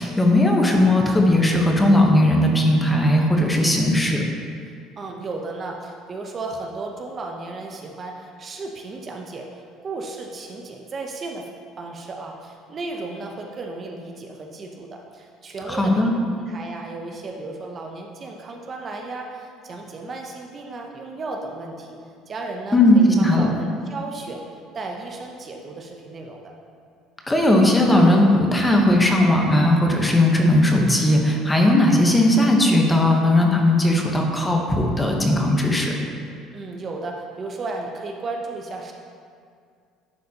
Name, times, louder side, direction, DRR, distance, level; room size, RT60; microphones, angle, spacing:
voice 1, 0.0-4.2 15.7-16.1 22.7-23.5 27.3-35.9, left 1 dB, 15° left, 1 dB, 0.9 m, -17 dB
voice 2, 5.0-11.5 11.8-22.0 22.3-24.4 24.7-26.5 36.5-38.9, right 3 dB, 35° right, 1 dB, 0.7 m, -34 dB
10.5 x 4.1 x 2.8 m, 2.2 s
supercardioid pair, 100°, 0 cm